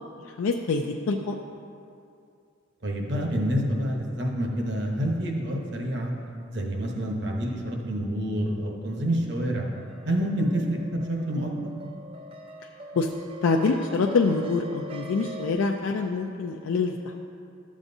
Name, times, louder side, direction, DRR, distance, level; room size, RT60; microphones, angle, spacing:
voice 1, 0.4-1.4 12.9-13.1 13.4-17.2, left 4 dB, 85° left, 1 dB, 0.4 m, -25 dB
voice 2, 2.8-6.1 6.5-9.7 10.0-11.5, equal, 55° right, 0 dB, 1.0 m, -27 dB
sound 1, 9.7-15.6, right 1 dB, 30° right, 0.4 m, -43 dB
12.0 x 7.3 x 2.7 m, 2.5 s
head